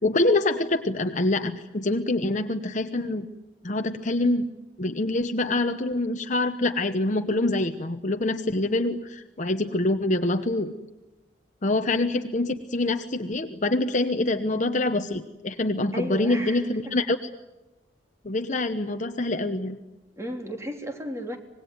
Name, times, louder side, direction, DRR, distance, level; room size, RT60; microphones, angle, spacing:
voice 1, 0.0-3.3 3.6-4.5 4.8-10.7 11.6-17.3 18.2-19.8, left 2 dB, 40° left, 7 dB, 1.0 m, -25 dB
voice 2, 15.9-16.8 20.2-21.4, equal, 15° right, 4 dB, 3.2 m, -34 dB
25.5 x 20.5 x 9.4 m, 1.1 s
head